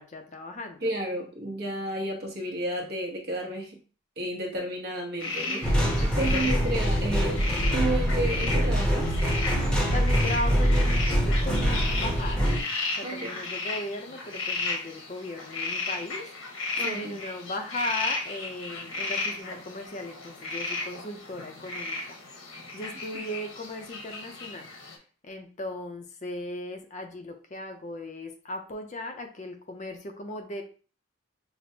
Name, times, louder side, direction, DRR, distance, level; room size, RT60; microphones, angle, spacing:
voice 1, 0.0-0.9 6.3-7.1 9.5-12.4 13.0-22.2 22.5-24.7 25.2-30.6, left 1 dB, 35° left, 5 dB, 0.5 m, -37 dB
voice 2, 0.8-3.8 4.2-7.5 7.7-9.1 13.0-13.4 16.8-17.2 23.1-23.3, right 1 dB, 50° right, 1 dB, 0.9 m, -32 dB
sound 1, 5.2-24.9, left 3 dB, 85° left, 1.1 m, -35 dB
sound 2, 5.6-12.6, equal, 5° left, 0.8 m, -24 dB
5.8 x 2.1 x 2.7 m, 0.38 s
head